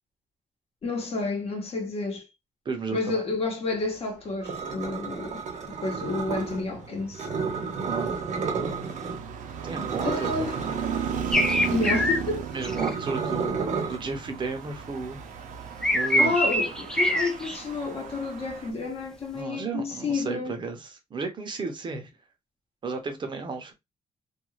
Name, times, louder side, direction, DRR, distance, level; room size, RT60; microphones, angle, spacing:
voice 1, 0.8-2.2 2.9-7.3 10.0-10.6 11.7-12.5 16.2-20.6, left 3 dB, 50° left, 0.9 m, -30 dB
voice 2, 2.6-3.2 7.8-8.1 9.6-10.6 12.5-15.3 15.9-16.4 19.3-22.1 22.8-23.7, right 4 dB, 35° right, 0.6 m, -33 dB
sound 1, 4.4-6.6 7.1-9.2 9.5-14.0, right 5 dB, 70° right, 0.9 m, -32 dB
Traffic noise roadway noise, 5.0-18.7, right 8 dB, 90° right, 0.5 m, -36 dB
sound 2, 11.3-12.2 12.6-12.9 15.8-17.6, left 1 dB, 5° left, 0.3 m, -24 dB
2.4 x 2.3 x 3.1 m
wide cardioid pair, 155°, 13 cm